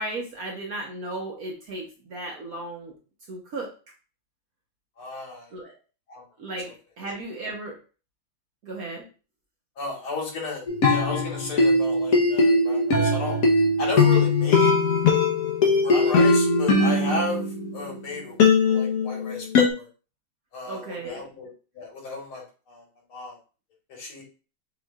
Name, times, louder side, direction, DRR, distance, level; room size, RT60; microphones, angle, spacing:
voice 1, 0.0-2.9 3.3-3.7 5.5-5.7 6.4-7.8 8.6-9.1 20.6-21.3, right 2 dB, 55° right, -1 dB, 1.1 m, -35 dB
voice 2, 5.0-5.5 6.1-6.2 7.0-7.1 9.8-13.4 13.8-14.7 15.8-17.4 17.7-18.4 18.6-19.5 19.7-19.9 20.5-21.5 21.7-22.4 22.7-22.8 23.1-23.4 23.9-24.2, left 3 dB, 80° left, -1 dB, 2.6 m, -33 dB
sound 1, 10.7-17.9 18.4-19.7, left 3 dB, 55° left, 1.1 m, -20 dB
7.0 x 3.1 x 2.4 m, 0.35 s
omnidirectional pair, 2.3 m